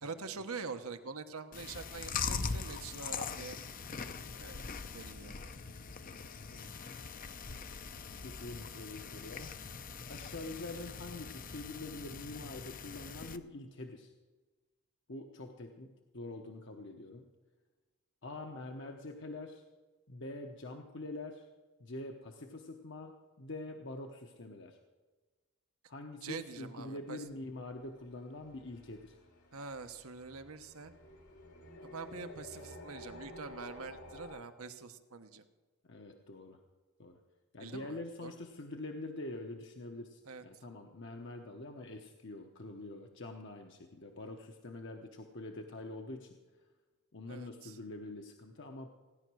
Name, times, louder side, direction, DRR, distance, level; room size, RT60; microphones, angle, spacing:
voice 1, 0.0-3.6 4.4-4.7 4.9-5.3 26.2-27.2 29.5-30.9 31.9-35.4 37.6-38.3 40.3-40.4 47.3-47.8, right 4 dB, 75° right, 8 dB, 1.1 m, -45 dB
Chewing mastication, 1.5-13.4, left 5 dB, 40° left, 0.6 m, -42 dB
voice 2, 8.2-9.6 10.1-14.1 15.1-17.3 18.2-19.6 20.1-21.5 21.8-24.8 25.9-29.2 35.8-36.6 37.0-37.2 37.5-46.4 47.1-48.9, left 2 dB, 55° left, 3 dB, 1.0 m, -45 dB
sound 1, 27.3-34.4, left 1 dB, 85° left, 3.0 m, -52 dB
17.0 x 10.5 x 6.2 m, 1.3 s
head